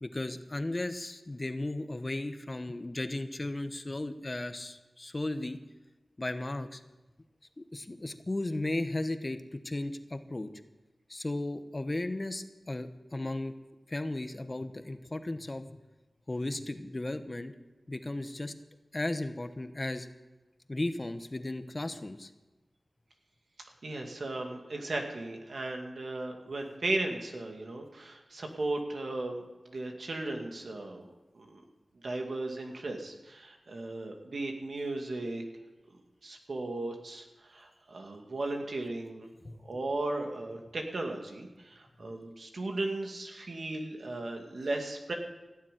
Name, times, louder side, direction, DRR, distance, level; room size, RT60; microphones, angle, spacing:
voice 1, 0.0-5.6 6.2-6.8 7.6-10.5 11.1-13.5 13.9-15.8 16.3-17.5 17.9-18.5 18.9-20.1 20.7-22.3 39.4-39.5, left 2 dB, 35° left, 9 dB, 1.1 m, -35 dB
voice 2, 23.8-31.1 31.3-31.6 32.0-35.4 36.2-39.3 39.6-45.1, right 2 dB, 75° right, 3 dB, 2.2 m, -36 dB
17.0 x 7.1 x 9.2 m, 1.1 s
cardioid pair, 55°, 0 cm